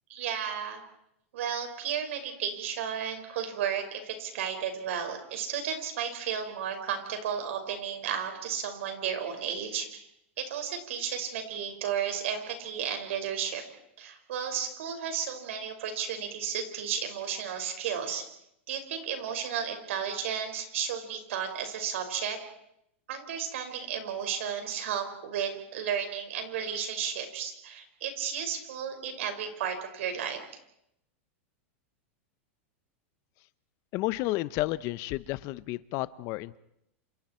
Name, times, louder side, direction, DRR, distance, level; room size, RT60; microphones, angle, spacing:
voice 1, 0.1-0.8 1.3-10.1 10.4-13.6 14.0-18.3 18.7-22.4 23.1-30.4, right 8 dB, 75° right, 6 dB, 5.3 m, -33 dB
voice 2, 33.9-36.6, left 19 dB, 45° left, 17 dB, 0.8 m, -31 dB
28.0 x 27.5 x 4.5 m, 0.77 s
supercardioid pair, 135°, 7 cm